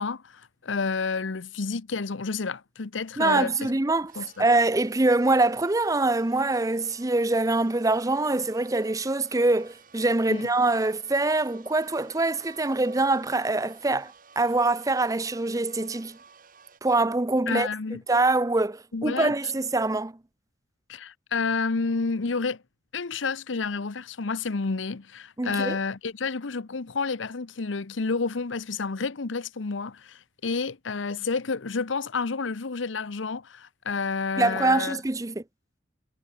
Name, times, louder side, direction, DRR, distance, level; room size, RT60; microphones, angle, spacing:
voice 1, 0.0-3.7 4.2-4.5 10.3-10.5 17.5-18.0 18.9-19.3 20.9-22.6 22.9-35.0, left 4 dB, 85° left, 0.8 m, -30 dB
voice 2, 3.2-4.1 4.4-16.2 16.8-17.7 18.1-20.1 25.4-25.8 34.4-35.4, right 2 dB, 20° right, 0.6 m, -24 dB
sound 1, 4.1-16.8, right 5 dB, 45° right, 4.2 m, -54 dB
head